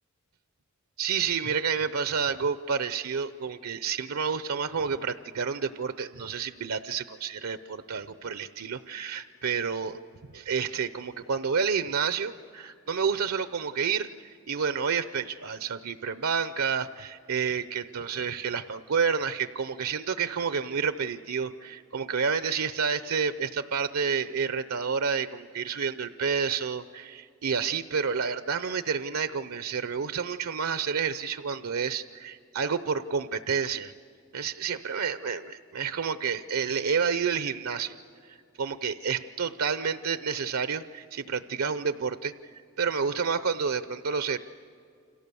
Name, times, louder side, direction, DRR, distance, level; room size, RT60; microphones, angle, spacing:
voice 1, 1.0-10.0 10.3-14.1 14.5-33.9 34.3-38.0 38.3-44.4, right 6 dB, 80° right, 12 dB, 0.7 m, -29 dB
29.5 x 26.5 x 6.9 m, 2.4 s
head